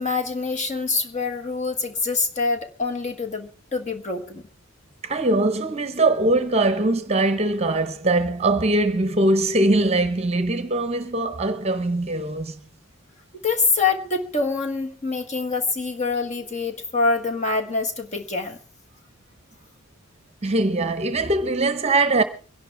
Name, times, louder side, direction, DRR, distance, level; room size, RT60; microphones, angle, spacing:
voice 1, 0.0-4.4 13.4-18.6, left 4 dB, 35° left, 1.6 m, -25 dB
voice 2, 5.0-12.5 20.4-22.2, right 2 dB, 30° right, 0.9 m, -21 dB
24.5 x 11.0 x 3.5 m
head